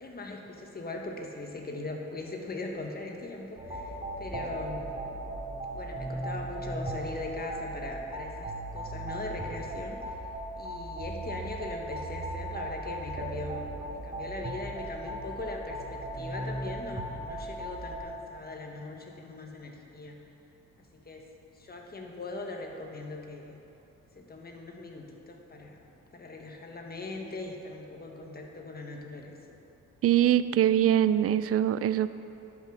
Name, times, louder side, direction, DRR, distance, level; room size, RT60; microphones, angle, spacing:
voice 1, 0.0-4.9 5.7-10.2 10.6-20.2 20.8-21.2 21.5-23.6 24.1-25.8 26.1-29.4, left 2 dB, 30° left, 1 dB, 1.4 m, -40 dB
sound 1, 3.6-18.0, right 1 dB, 20° right, 2.3 m, -37 dB
voice 2, 30.0-32.1, right 11 dB, 50° right, 14 dB, 0.4 m, -23 dB
11.0 x 6.1 x 6.4 m, 2.9 s
cardioid pair, 90°, 30 cm